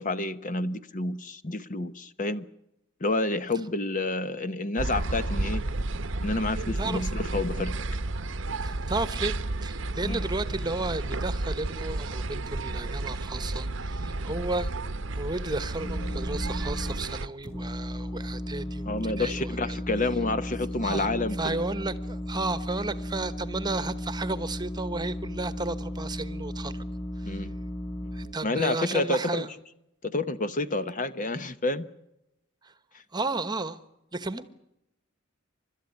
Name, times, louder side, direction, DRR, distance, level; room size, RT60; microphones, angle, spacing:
voice 1, 0.0-2.4 3.0-5.6 6.2-7.7 10.0-10.2 14.2-14.4 18.9-21.6 27.2-27.5 28.4-29.5 30.0-31.8, left 2 dB, 40° left, 12 dB, 0.9 m, -29 dB
sound 1, 4.8-17.3, right 2 dB, 65° right, 0.9 m, -32 dB
voice 2, 6.8-7.1 8.6-9.3 9.6-14.7 15.1-19.8 20.8-21.1 21.4-26.8 27.2-27.4 28.1-29.5 32.6-32.7 33.1-33.8 34.1-34.5, right 2 dB, 20° right, 13 dB, 1.1 m, -33 dB
sound 2, 15.7-16.9 17.4-28.3, equal, 20° left, 4.9 m, -35 dB
29.5 x 13.0 x 9.8 m, 0.85 s
head